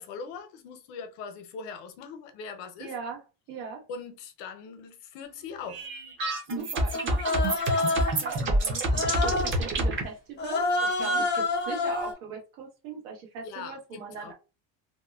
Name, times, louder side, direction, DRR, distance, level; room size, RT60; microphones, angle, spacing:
voice 1, 0.0-2.9 3.9-5.9 11.0-11.3 13.4-14.3, left 5 dB, 80° left, 0.8 m, -41 dB
voice 2, 2.8-3.2 3.5-3.8 6.5-14.3, right 5 dB, 85° right, 1.2 m, -40 dB
sound 1, 5.7-10.0, right 1 dB, 25° right, 0.5 m, -27 dB
Human voice, 6.9-8.3 8.9-9.6 10.4-12.1, left 2 dB, 25° left, 0.5 m, -28 dB
2.8 x 2.1 x 2.3 m
cardioid pair, 145°, 49 cm